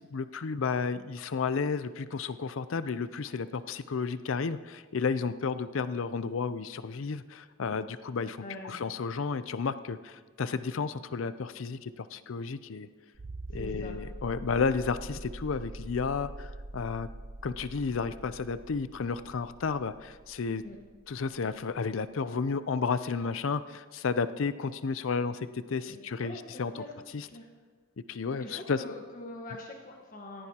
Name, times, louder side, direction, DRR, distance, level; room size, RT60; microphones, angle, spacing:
voice 1, 0.1-12.9 13.5-17.1 17.4-20.6 21.1-26.8 27.1-27.3 28.1-28.8, left 5 dB, 70° left, 13 dB, 0.5 m, -32 dB
voice 2, 8.4-8.8 13.5-14.0 20.6-20.8 25.9-26.9 27.3-27.5 28.4-30.5, left 2 dB, 45° left, 0 dB, 1.4 m, -44 dB
sound 1, 13.1-21.6 23.1-23.2, right 1 dB, 45° right, 0.6 m, -44 dB
17.5 x 15.0 x 2.9 m, 1.5 s
head